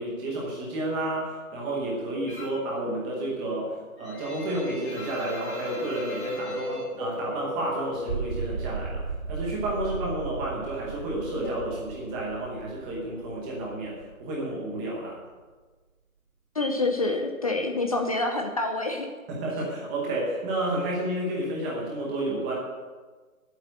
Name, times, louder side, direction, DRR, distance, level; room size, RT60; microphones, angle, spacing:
voice 1, 0.0-15.2 19.3-22.5, right 1 dB, 5° right, -4 dB, 0.9 m, -31 dB
sound 1, 2.3-2.7 3.1-7.9 8.2-9.3 9.5-12.4, left 1 dB, 50° left, 5.1 m, -42 dB
Wind, 4.9-9.2 9.4-9.5, left 1 dB, 75° left, 2.2 m, -37 dB
sound 2, 7.9-14.4, right 5 dB, 75° right, 1.2 m, -36 dB
voice 2, 16.6-19.1, left 2 dB, 25° left, 4 dB, 0.7 m, -27 dB
11.5 x 8.2 x 9.1 m, 1.4 s
hypercardioid pair, 165°, 43 cm